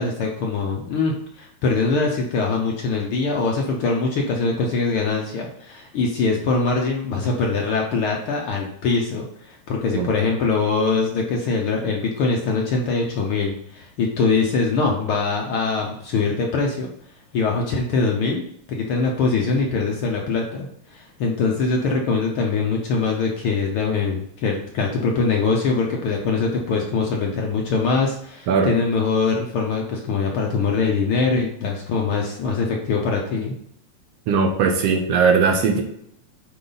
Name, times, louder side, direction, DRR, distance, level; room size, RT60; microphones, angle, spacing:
voice 1, 0.0-16.9 17.3-18.4 18.7-33.5, left 4 dB, 65° left, 0 dB, 1.3 m, -23 dB
voice 2, 34.3-35.8, right 5 dB, 65° right, 3 dB, 1.9 m, -19 dB
9.5 x 3.8 x 4.0 m, 0.69 s
omnidirectional pair, 3.3 m